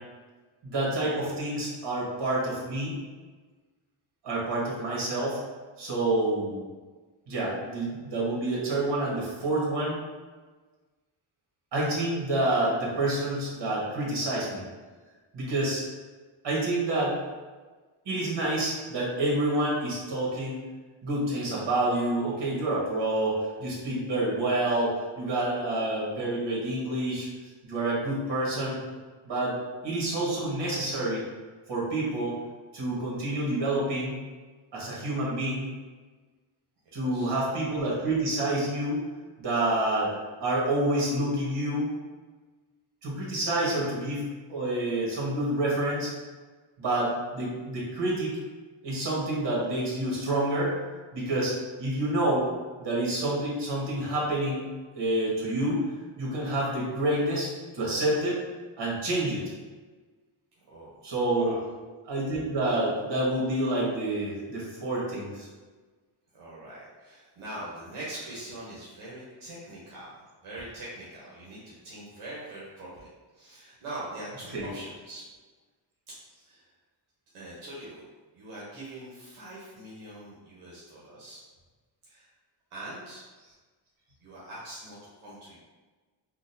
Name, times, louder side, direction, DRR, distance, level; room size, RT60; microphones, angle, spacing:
voice 1, 0.6-3.0 4.2-5.4 5.8-6.6 7.3-10.0 11.7-14.6 15.3-15.8 16.4-17.2 18.0-20.6 21.0-27.3 27.6-28.8 29.2-29.6 29.8-31.2 31.7-32.4 32.7-34.2 34.7-35.7 36.9-39.0 39.4-40.1 40.4-41.9 43.0-46.1 46.8-48.4 48.8-50.7 51.1-51.5 51.8-52.4 52.8-54.7 54.9-55.9 56.2-57.5 57.7-58.4 58.8-59.4 61.0-61.5 62.1-65.5 74.5-74.7, right 1 dB, 55° right, -5 dB, 1.5 m, -28 dB
voice 2, 37.0-37.3 60.7-61.0 61.3-61.6 66.3-73.1 73.3-75.2 76.1-76.2 76.5-76.7 77.3-78.0 78.3-81.4 82.0-82.3 82.7-83.2 84.2-85.6, right 1 dB, 85° right, -7 dB, 1.0 m, -42 dB
3.8 x 2.4 x 2.6 m, 1.3 s
cardioid pair, 85°, 49 cm